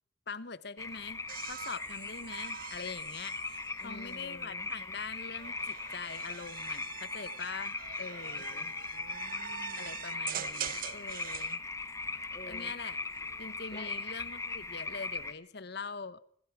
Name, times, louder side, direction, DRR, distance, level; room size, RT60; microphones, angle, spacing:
voice 1, 0.3-8.7 9.7-11.6 12.5-13.0 13.4-16.2, left 5 dB, 60° left, 17 dB, 1.1 m, -43 dB
sound 1, 0.8-15.3, left 3 dB, 15° left, 1.5 m, -39 dB
sound 2, 1.3-4.5 5.3-11.6 13.0-13.5, right 9 dB, 50° right, 0.9 m, -44 dB
voice 2, 3.8-4.7 8.3-9.9 12.3-12.7 13.7-13.9, left 1 dB, 35° left, 7 dB, 3.2 m, -51 dB
26.0 x 16.5 x 6.1 m, 0.67 s
head